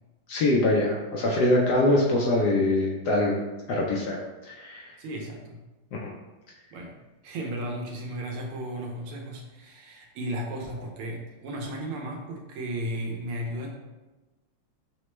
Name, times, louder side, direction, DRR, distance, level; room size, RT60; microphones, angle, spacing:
voice 1, 0.3-3.4 3.7-4.2 4.5-5.0 5.9-6.1, left 1 dB, 75° left, -2 dB, 0.9 m, -23 dB
voice 2, 5.0-5.6 6.7-6.9 7.2-13.7, right 1 dB, 90° right, 0 dB, 1.6 m, -34 dB
6.0 x 2.1 x 3.1 m, 1.1 s
omnidirectional pair, 2.3 m